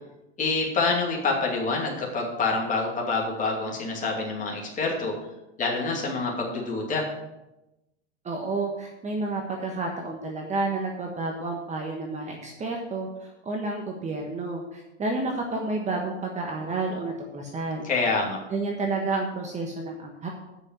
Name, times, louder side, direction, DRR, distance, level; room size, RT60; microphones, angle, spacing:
voice 1, 0.4-5.1 5.6-7.1 17.8-18.4, left 3 dB, 20° left, -2 dB, 2.7 m, -26 dB
voice 2, 8.2-17.9 18.5-20.3, right 3 dB, 20° right, 1 dB, 1.3 m, -30 dB
8.6 x 6.3 x 7.6 m, 0.96 s
supercardioid pair, 135°, 34 cm